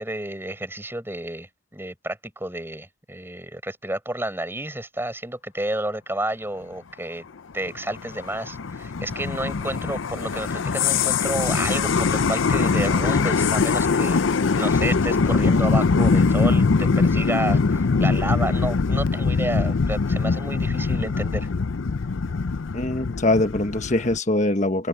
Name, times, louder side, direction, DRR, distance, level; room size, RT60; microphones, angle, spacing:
voice 1, 0.0-7.3 7.5-14.2 14.5-21.5, right 1 dB, 10° right, 6.2 m, -31 dB
sound 1, 7.7-24.2, left 4 dB, 70° left, 0.6 m, -22 dB
voice 2, 22.7-24.9, left 2 dB, 35° left, 1.4 m, -23 dB
head